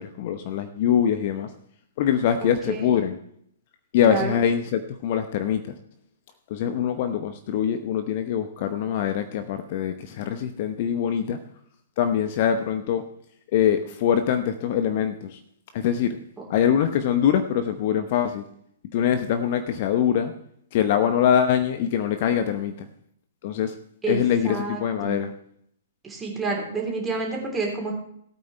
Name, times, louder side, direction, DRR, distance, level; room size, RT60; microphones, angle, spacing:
voice 1, 0.0-1.5 2.0-3.2 3.9-5.8 6.5-11.4 12.0-13.1 13.5-15.4 15.7-16.2 16.5-18.4 18.9-20.3 20.7-22.9 23.4-23.8 24.1-25.3, left 9 dB, 40° left, 9 dB, 0.8 m, -23 dB
voice 2, 2.4-3.0 4.1-4.4 24.0-24.2 24.4-25.2 26.0-27.9, right 4 dB, 10° right, -1 dB, 3.3 m, -29 dB
18.0 x 8.8 x 3.2 m, 0.67 s
figure-of-eight pair, 120°, 0 cm